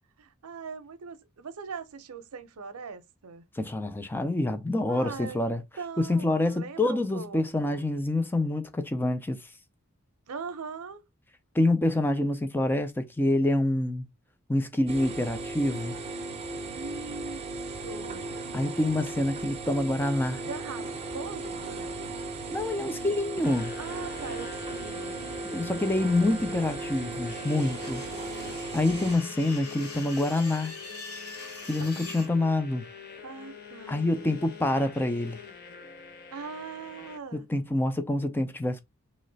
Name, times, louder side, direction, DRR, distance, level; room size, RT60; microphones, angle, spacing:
voice 1, 0.2-3.4 4.9-5.4 5.8-7.9 10.3-11.0 16.7-17.4 17.8-18.4 20.4-20.8 21.1-22.0 23.8-25.2 31.8-32.3 33.2-34.0 36.3-37.4, right 5 dB, 85° right, 0.6 m, -41 dB
voice 2, 3.5-5.6 6.0-9.5 11.5-14.1 14.5-16.0 18.5-20.4 22.5-23.7 25.4-28.0 28.7-30.7 31.7-32.9 33.9-35.4 37.3-38.8, left 1 dB, 10° left, 0.3 m, -27 dB
sound 1, 14.9-29.2, right 3 dB, 30° right, 0.6 m, -36 dB
sound 2, 23.4-37.2, left 6 dB, 45° left, 0.6 m, -45 dB
sound 3, 27.3-32.3, left 3 dB, 90° left, 1.5 m, -44 dB
3.1 x 2.1 x 3.8 m
head